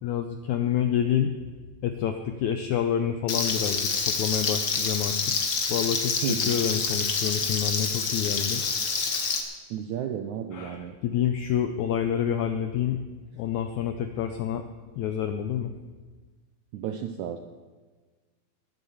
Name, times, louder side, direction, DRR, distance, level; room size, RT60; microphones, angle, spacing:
voice 1, 0.0-1.3 1.8-5.3 5.7-8.6 10.5-13.0 13.3-14.7 15.0-15.7, left 9 dB, 85° left, 7 dB, 1.7 m, -28 dB
Frying (food), 3.3-9.4, left 5 dB, 60° left, 1.1 m, -27 dB
voice 2, 6.2-6.5 9.7-10.9 16.7-17.4, right 9 dB, 80° right, 7 dB, 1.7 m, -32 dB
19.5 x 8.0 x 7.1 m, 1.4 s
omnidirectional pair, 4.2 m